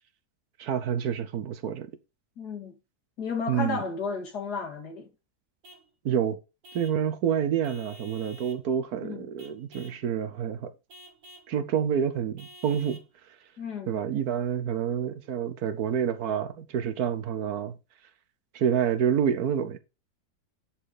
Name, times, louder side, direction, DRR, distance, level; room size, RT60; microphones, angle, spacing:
voice 1, 0.6-1.9 3.5-3.8 6.0-6.4 6.7-10.7 11.5-13.0 13.9-17.8 18.5-19.8, right 8 dB, 70° right, 1.3 m, -28 dB
voice 2, 2.4-2.7 3.2-5.1 9.0-9.3 13.6-14.0, left 5 dB, 75° left, 2.4 m, -33 dB
Vehicle horn car horn honking / Truck, 5.6-5.9 6.6-7.0 7.6-8.7 9.4-10.0 10.9-11.5 12.4-13.1, equal, 50° right, 1.7 m, -50 dB
10.0 x 4.3 x 4.8 m
omnidirectional pair, 1.8 m